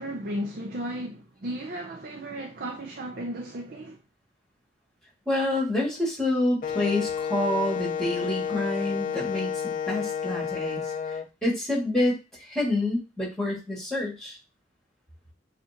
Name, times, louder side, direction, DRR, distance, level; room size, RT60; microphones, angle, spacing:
voice 1, 0.0-4.0, right 1 dB, 55° right, 0.6 m, -34 dB
voice 2, 5.3-10.9 11.4-14.4, left 1 dB, 5° left, 2.2 m, -27 dB
Wind instrument woodwind instrument, 6.6-11.2, left 7 dB, 45° left, 0.5 m, -30 dB
6.9 x 2.5 x 2.9 m
head